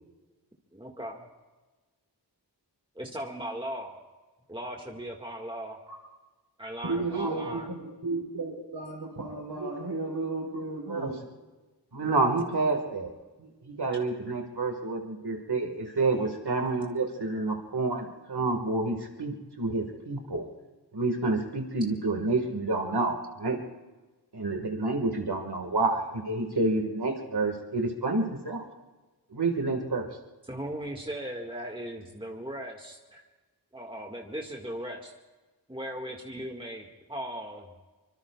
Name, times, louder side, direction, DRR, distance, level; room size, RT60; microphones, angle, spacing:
voice 1, 0.7-1.3 3.0-4.0 4.5-5.8 6.6-7.7 9.9-10.1 30.5-33.2 33.7-35.1 35.7-37.7, right 1 dB, 10° right, 1 dB, 1.9 m, -38 dB
voice 2, 6.8-11.2, right 3 dB, 90° right, -3 dB, 4.1 m, -34 dB
voice 3, 10.9-11.2 11.9-13.1 13.4-20.5 20.9-23.6 24.3-28.7 29.3-30.1, right 3 dB, 70° right, 3 dB, 1.9 m, -29 dB
25.0 x 24.0 x 2.4 m, 1.2 s
wide cardioid pair, 40°, 41 cm